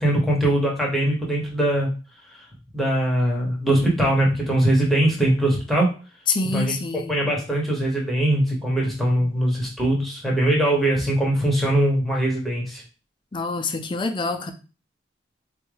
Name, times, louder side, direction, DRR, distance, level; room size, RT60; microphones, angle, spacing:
voice 1, 0.0-1.9 2.3-2.4 2.7-5.9 6.4-12.8, right 1 dB, ahead, 0.8 m, -21 dB
voice 2, 6.3-7.2 9.2-9.3 13.3-14.5, left 3 dB, 25° left, 0.4 m, -26 dB
4.2 x 2.3 x 3.2 m
head